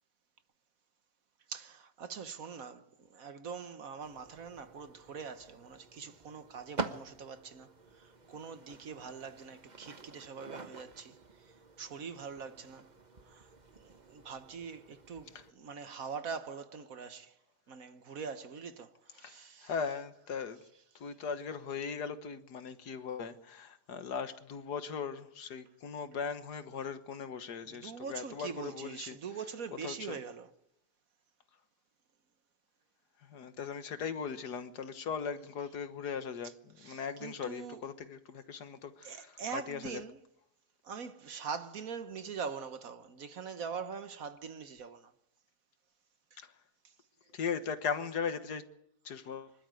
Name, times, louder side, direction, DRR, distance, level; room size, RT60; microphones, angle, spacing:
voice 1, 1.5-7.7 8.0-11.2 11.8-12.9 13.3-13.5 13.8-17.3 17.7-19.7 27.6-30.5 36.8-37.8 39.0-40.2 40.8-45.1 46.3-46.4, right 6 dB, 60° right, 1.5 m, -43 dB
sound 1, 4.0-15.5, right 3 dB, 30° right, 1.2 m, -47 dB
voice 2, 19.2-20.6 21.0-29.2 29.8-30.2 33.3-40.0 46.4-46.5 47.3-48.6 49.1-49.5, left 6 dB, 75° left, 1.9 m, -39 dB
25.5 x 12.5 x 9.2 m
omnidirectional pair, 1.8 m